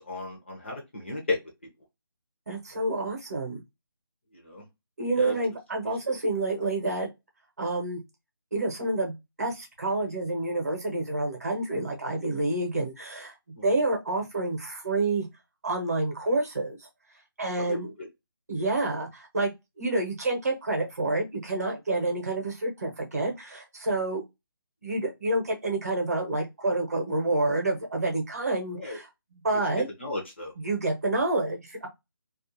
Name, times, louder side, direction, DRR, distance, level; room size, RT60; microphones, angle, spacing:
voice 1, 0.1-1.4 4.4-4.6 5.1-5.3 6.1-6.2 13.6-13.7 17.6-18.1 28.7-29.0 30.0-30.5, left 2 dB, 30° left, 0.6 m, -34 dB
voice 2, 2.5-3.6 5.0-7.1 7.6-8.0 8.5-13.4 13.6-15.3 15.6-16.8 17.4-17.9 18.5-24.2 24.8-29.9 30.6-31.9, right 2 dB, 40° right, 0.8 m, -28 dB
2.4 x 2.2 x 2.6 m
hypercardioid pair, 180°, 12 cm